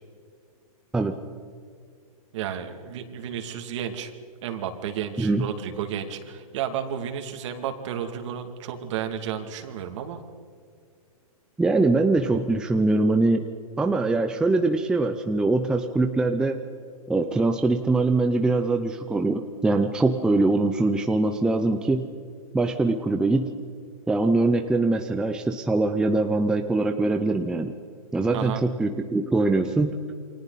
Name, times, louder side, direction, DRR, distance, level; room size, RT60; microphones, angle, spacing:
voice 1, 2.3-4.1 4.4-10.2 28.3-28.6, right 9 dB, 50° right, 5 dB, 2.6 m, -32 dB
voice 2, 11.6-13.4 13.8-16.6 17.1-22.1 22.5-23.5 24.1-27.7 28.1-29.9, right 2 dB, 5° right, 5 dB, 0.6 m, -23 dB
29.0 x 25.0 x 4.1 m, 2.2 s
hypercardioid pair, 155°, 19 cm